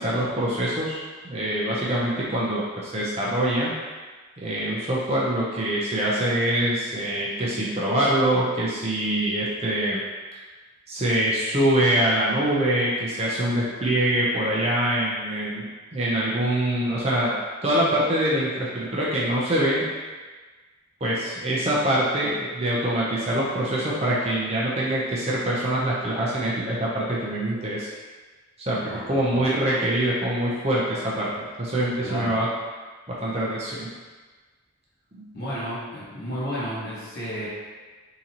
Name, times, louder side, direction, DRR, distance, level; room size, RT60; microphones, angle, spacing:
voice 1, 0.0-3.8 4.4-10.0 10.9-15.6 15.9-17.4 17.6-19.9 21.0-27.9 28.6-32.5 33.1-33.9 35.1-35.2, right 1 dB, 30° right, -6 dB, 0.6 m, -24 dB
voice 2, 28.8-29.5 32.0-32.3 35.3-37.5, equal, 45° left, -9 dB, 1.3 m, -32 dB
3.8 x 2.8 x 2.8 m, 1.3 s
head